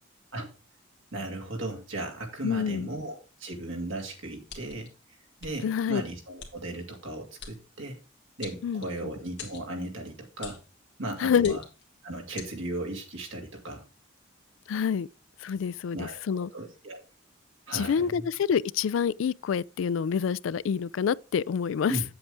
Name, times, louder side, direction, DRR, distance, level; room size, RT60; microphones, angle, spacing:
voice 1, 1.1-4.9 5.4-8.0 8.4-10.6 11.0-11.6 12.0-13.8 15.9-17.0 17.7-18.3 21.9-22.0, right 1 dB, 80° right, 2.4 m, -36 dB
voice 2, 2.4-2.9 5.6-6.0 8.6-8.8 11.2-11.6 14.7-15.1 15.4-16.5 17.7-22.0, left 7 dB, 80° left, 0.3 m, -27 dB
sound 1, 4.5-4.9 5.4-5.5 6.4-6.5 7.4-7.6 8.4-9.0 9.4-9.7 10.4-10.7 11.4-11.8 12.4-12.5, left 6 dB, 60° left, 1.8 m, -43 dB
8.5 x 7.9 x 3.5 m
head